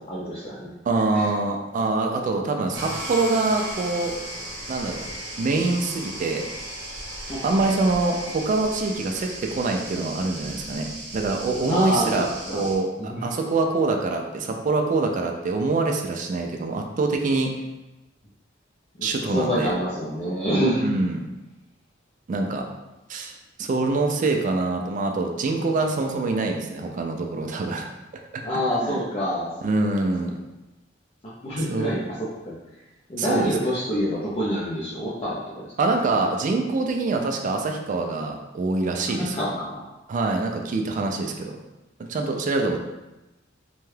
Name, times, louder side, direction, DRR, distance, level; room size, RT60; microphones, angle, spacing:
voice 1, 0.0-0.7 1.1-1.3 7.2-7.4 7.7-7.9 11.7-12.1 12.5-12.7 13.0-13.3 19.0-20.8 28.4-29.5 30.2-30.3 31.4-32.2 32.5-32.6 33.1-35.7 39.1-39.8, equal, 35° left, -8 dB, 0.5 m, -27 dB
voice 2, 0.9-4.1 4.7-5.0 5.4-6.5 7.4-10.9 11.1-17.5 19.0-19.7 20.8-21.2 22.3-22.6 23.1-23.3 23.6-27.9 28.8-29.0 29.6-30.4 31.6-31.9 33.2-33.5 35.8-39.5 40.1-41.6 42.1-42.8, right 3 dB, 40° right, 3 dB, 0.3 m, -25 dB
sound 1, 2.7-12.8, right 1 dB, 70° right, 0.8 m, -36 dB
2.7 x 2.2 x 3.2 m, 1.0 s
head